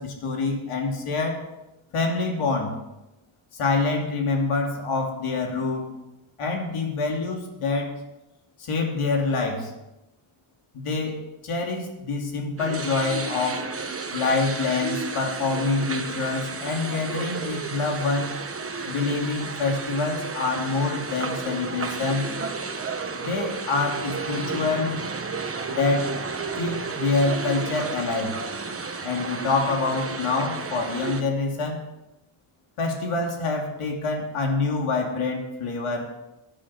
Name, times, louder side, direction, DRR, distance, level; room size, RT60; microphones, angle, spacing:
voice 1, 0.0-1.5 1.9-2.8 3.5-5.9 6.4-7.9 8.6-9.7 10.7-13.6 14.1-18.4 18.9-22.3 23.1-25.0 25.7-26.1 26.6-28.4 29.0-31.8 32.8-36.1, left 3 dB, 85° left, 1 dB, 3.0 m, -26 dB
sound 1, 12.6-31.2, right 4 dB, 30° right, 1.1 m, -32 dB
16.5 x 10.0 x 4.4 m, 0.95 s
wide cardioid pair, 125°, 49 cm